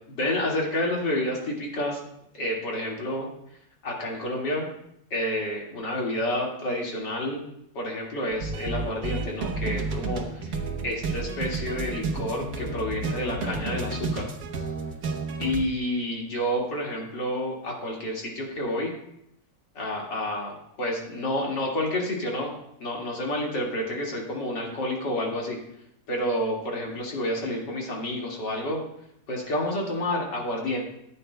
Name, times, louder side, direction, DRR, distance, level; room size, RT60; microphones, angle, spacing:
voice 1, 0.1-2.0 2.3-3.3 3.8-4.7 5.1-7.4 7.7-10.6 10.8-14.3 15.4-18.9 19.7-22.5 22.8-25.6 26.1-28.8 29.3-30.8, left 1 dB, 75° left, -2 dB, 2.8 m, -29 dB
sound 1, 8.3-15.6, right 3 dB, 55° right, 1.4 m, -31 dB
15.0 x 9.0 x 2.2 m, 0.76 s
omnidirectional pair, 1.9 m